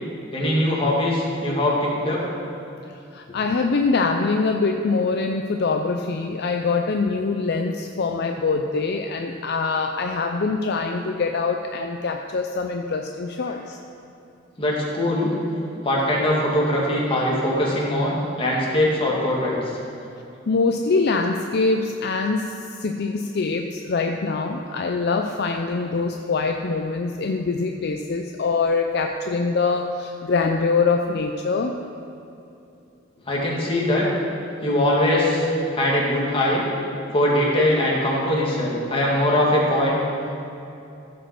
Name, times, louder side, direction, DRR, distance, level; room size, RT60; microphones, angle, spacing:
voice 1, 0.3-2.2 14.6-15.3 15.8-19.7 33.3-34.1 34.6-35.5 35.7-36.6 37.1-40.0, left 1 dB, 30° left, -4 dB, 2.1 m, -21 dB
voice 2, 3.1-13.8 20.5-31.8, left 4 dB, 55° left, 4 dB, 0.5 m, -24 dB
15.0 x 5.2 x 5.9 m, 2.7 s
head